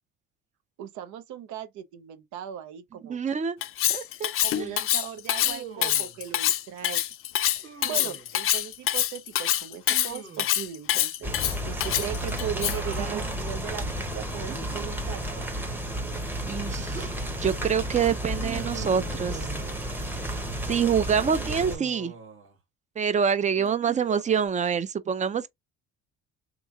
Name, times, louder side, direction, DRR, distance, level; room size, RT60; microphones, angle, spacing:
voice 1, 0.8-3.2 4.4-7.0 7.5-13.8 14.1-15.4, right 9 dB, 75° right, 0.8 m, -38 dB
voice 2, 3.1-3.6 3.9-4.3 4.6-4.7 13.0-13.2 16.5-17.1 17.4-19.5 20.7-22.1 23.0-25.5, right 7 dB, 25° right, 0.5 m, -26 dB
Cutlery silverware, 3.6-12.9, left 12 dB, 50° left, 0.4 m, -25 dB
Human voice, 5.4-6.2 7.6-8.3 9.9-10.7 12.2-13.4 14.5-16.0 16.7-17.2 18.4-20.0 21.4-22.6 23.6-24.5, right 7 dB, 45° right, 1.3 m, -44 dB
sound 1, 11.2-21.8, right 1 dB, 5° right, 0.9 m, -32 dB
3.6 x 3.0 x 2.4 m
cardioid pair, 105°, 29 cm